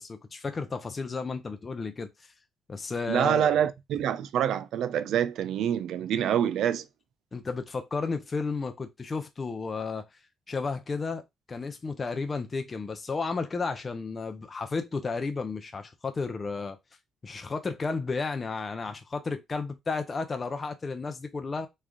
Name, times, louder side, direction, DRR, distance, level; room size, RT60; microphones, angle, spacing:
voice 1, 0.0-2.1 2.7-3.5 7.3-10.0 10.5-16.8 17.2-21.7, left 4 dB, 30° left, 0.6 m, -33 dB
voice 2, 3.1-6.9, right 9 dB, 80° right, 0.4 m, -26 dB
3.2 x 2.4 x 3.6 m
cardioid pair, 90°, 0 cm